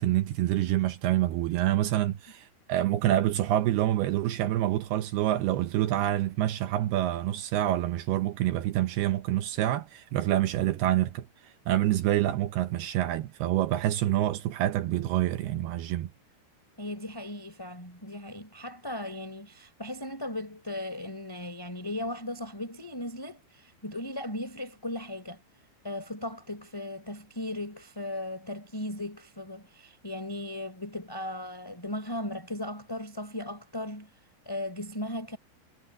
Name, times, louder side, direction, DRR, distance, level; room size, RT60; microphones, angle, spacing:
voice 1, 0.0-16.1, right 13 dB, 80° right, 2.3 m, -27 dB
voice 2, 16.8-25.4 25.8-34.1 34.4-35.4, left 1 dB, 5° left, 4.9 m, -37 dB
omnidirectional pair, 5.5 m